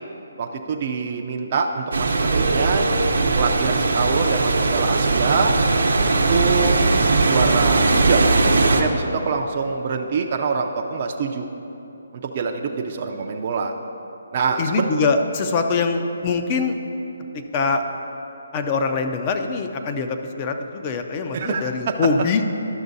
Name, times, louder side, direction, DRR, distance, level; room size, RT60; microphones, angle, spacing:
voice 1, 0.4-2.9 3.4-5.5 6.3-6.9 7.3-8.2 8.7-11.5 12.1-13.7 14.3-14.9 21.3-21.9, right 5 dB, 40° right, 1 dB, 0.4 m, -25 dB
sound 1, 1.9-8.8, right 3 dB, 80° right, 0.8 m, -19 dB
voice 2, 14.6-16.8 17.3-17.8 18.5-22.4, left 4 dB, 25° left, 6 dB, 0.5 m, -23 dB
12.0 x 6.2 x 2.7 m, 2.9 s
hypercardioid pair, 155°, 0 cm